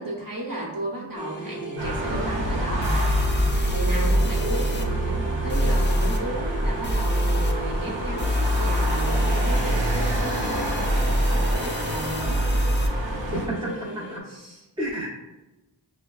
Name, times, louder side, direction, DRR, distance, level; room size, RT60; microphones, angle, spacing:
voice 1, 0.0-2.9 3.2-12.4 13.1-14.0 14.3-14.6, right 1 dB, 50° right, -3 dB, 1.1 m, -34 dB
sound 1, 1.1-14.2, right 2 dB, 40° left, 0.8 m, -37 dB
sound 2, 1.8-13.5, right 1 dB, 80° right, 0.8 m, -28 dB
sound 3, 2.1-2.2 2.8-4.9 5.5-6.2 6.8-7.5 8.2-12.9, equal, 25° left, 0.5 m, -24 dB
voice 2, 13.3-14.2 14.8-15.1, right 1 dB, 10° right, -5 dB, 0.8 m, -31 dB
5.5 x 2.1 x 2.3 m, 1.0 s
wide cardioid pair, 60°, 45 cm